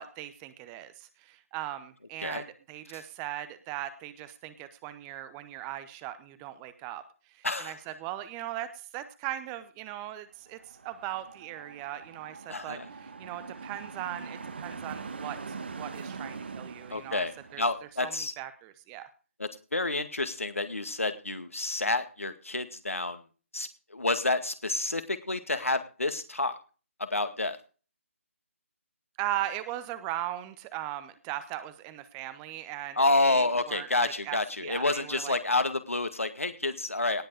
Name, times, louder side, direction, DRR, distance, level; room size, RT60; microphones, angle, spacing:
voice 1, 0.0-7.0 7.3-15.4 15.8-17.3 17.5-17.6 18.0-19.1 29.2-35.4, right 13 dB, 15° right, 13 dB, 0.7 m, -39 dB
voice 2, 7.4-7.7 12.5-12.9 16.9-17.3 17.6-18.3 19.4-23.2 23.5-26.6 27.0-27.6 33.0-37.2, left 2 dB, 70° left, 9 dB, 2.0 m, -29 dB
sound 1, 10.5-17.9, right 4 dB, 45° right, 1.6 m, -42 dB
18.5 x 7.8 x 4.9 m, 0.36 s
figure-of-eight pair, 145°, 8 cm